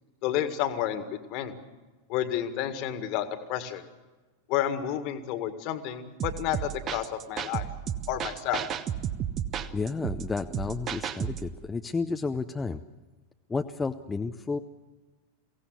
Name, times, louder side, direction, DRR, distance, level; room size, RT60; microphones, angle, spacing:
voice 1, 0.2-1.0 1.3-1.5 2.1-3.8 4.5-7.7 8.1-8.6, left 11 dB, 45° left, 9 dB, 1.9 m, -30 dB
sound 1, 6.2-11.5, right 9 dB, 30° right, 1.0 m, -33 dB
voice 2, 9.7-12.8 13.5-14.6, left 4 dB, 15° left, 6 dB, 0.7 m, -31 dB
23.5 x 17.0 x 8.1 m, 1.2 s
figure-of-eight pair, 90°, 0 cm